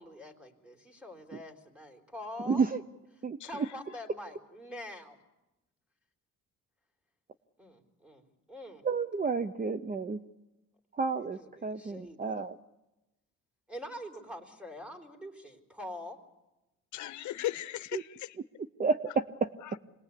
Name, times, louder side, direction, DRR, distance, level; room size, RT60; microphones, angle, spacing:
voice 1, 0.0-2.6 3.4-5.2 7.6-8.2 8.5-8.8 11.2-12.4 13.7-16.2, left 1 dB, 5° right, 0 dB, 3.8 m, -45 dB
voice 2, 2.5-2.8 3.2-3.4 8.8-10.2 10.9-12.6 17.9-18.0 18.8-19.5, right 4 dB, 30° right, 11 dB, 0.8 m, -30 dB
voice 3, 3.4-3.8 16.9-18.4 19.6-19.8, left 14 dB, 75° left, 13 dB, 0.8 m, -38 dB
27.0 x 20.5 x 8.5 m, 1.0 s
cardioid pair, 90°, 30 cm